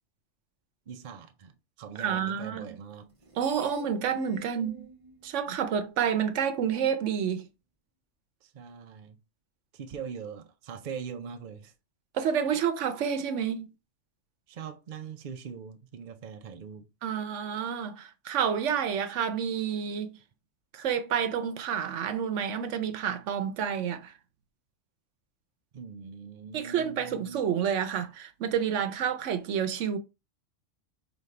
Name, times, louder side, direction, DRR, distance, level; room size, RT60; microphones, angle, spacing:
voice 1, 0.9-3.1 8.4-9.2 9.7-11.7 14.5-16.9 25.7-27.5, right 6 dB, 50° right, 0.6 m, -42 dB
voice 2, 2.0-2.6 3.4-4.9 5.2-7.4 12.1-13.7 17.0-20.2 20.7-24.1 26.5-30.0, right 8 dB, 85° right, 1.0 m, -29 dB
Screech, 3.0-6.3, right 3 dB, 30° right, 1.1 m, -48 dB
5.2 x 2.7 x 3.2 m
omnidirectional pair, 1.2 m